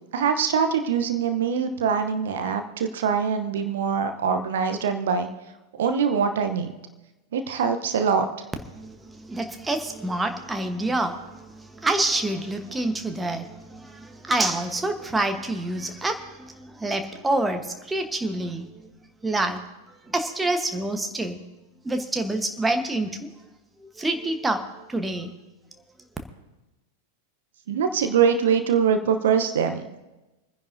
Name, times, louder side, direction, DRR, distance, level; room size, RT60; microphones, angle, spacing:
voice 1, 0.1-5.3 5.8-6.7 7.3-8.3 27.7-29.8, right 6 dB, 60° right, 7 dB, 0.9 m, -23 dB
voice 2, 8.8-11.2 11.5-18.7 19.2-19.6 20.1-21.4 21.8-23.3 24.0-24.6 24.9-25.3, right 2 dB, 10° right, 6 dB, 1.2 m, -27 dB
27.5 x 10.0 x 2.7 m, 1.1 s
figure-of-eight pair, 90°, 0 cm